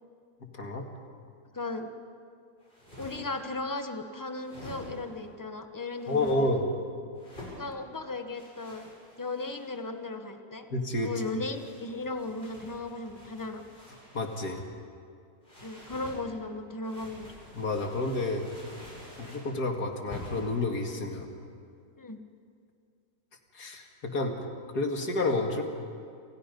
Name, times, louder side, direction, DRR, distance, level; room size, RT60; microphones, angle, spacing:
voice 1, 0.5-0.8 6.1-6.7 10.7-11.1 14.1-14.6 17.5-18.5 19.2-21.3 23.5-24.4 24.7-25.6, left 2 dB, 65° left, 3 dB, 2.8 m, -29 dB
voice 2, 1.5-1.9 3.0-6.6 7.6-8.9 9.2-10.7 11.0-13.6 15.6-17.3 22.0-22.2, left 2 dB, 15° left, 6 dB, 1.2 m, -36 dB
sound 1, 2.6-3.5 4.3-5.2 6.0-6.4 7.2-7.6 8.3-9.8 10.8-14.6 15.4-16.2 16.8-19.5 20.1-20.6, equal, 30° left, 8.3 m, -48 dB
29.0 x 28.0 x 5.4 m, 2.3 s
omnidirectional pair, 1.8 m